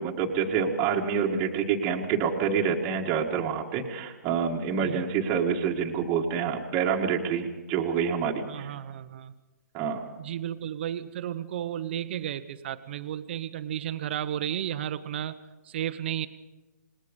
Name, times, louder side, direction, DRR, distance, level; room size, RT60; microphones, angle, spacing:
voice 1, 0.0-8.7 9.7-10.0, right 6 dB, 20° right, 0 dB, 1.7 m, -27 dB
voice 2, 8.5-9.3 10.2-15.3 15.7-16.3, right 11 dB, 35° right, 12 dB, 1.1 m, -33 dB
27.0 x 20.5 x 5.3 m, 1.1 s
hypercardioid pair, 165°, 9 cm